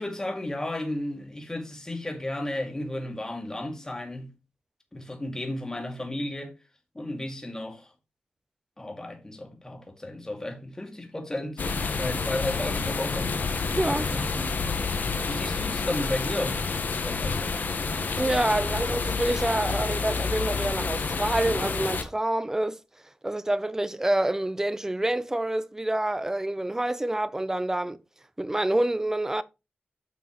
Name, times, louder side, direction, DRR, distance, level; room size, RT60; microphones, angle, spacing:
voice 1, 0.0-4.3 4.9-6.5 6.9-7.9 8.8-13.3 14.0-14.5 15.3-16.6 17.0-17.5, left 1 dB, 15° left, 2.2 m, -33 dB
sound 1, 11.6-22.0, left 4 dB, 60° left, 1.4 m, -29 dB
voice 2, 13.7-14.1 18.2-22.8 23.2-28.0 28.4-29.4, right 1 dB, 15° right, 0.6 m, -27 dB
9.2 x 6.0 x 3.1 m
wide cardioid pair, 115°, 4 cm